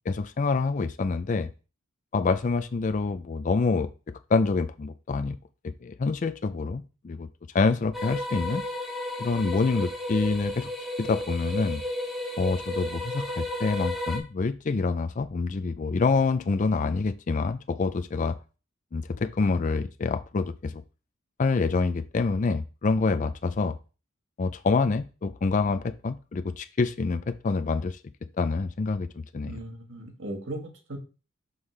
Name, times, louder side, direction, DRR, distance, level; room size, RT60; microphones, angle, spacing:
voice 1, 0.1-1.5 2.1-3.9 4.3-5.4 5.6-7.3 7.5-8.6 9.2-10.7 11.0-11.8 12.4-18.3 18.9-20.8 21.4-23.8 24.4-28.0 28.4-29.6, left 4 dB, 35° left, 10 dB, 0.3 m, -26 dB
sound 1, 7.9-14.2, left 1 dB, ahead, 1.2 m, -33 dB
voice 2, 29.4-31.0, right 1 dB, 60° right, 2 dB, 1.6 m, -37 dB
6.3 x 5.6 x 3.2 m, 0.33 s
head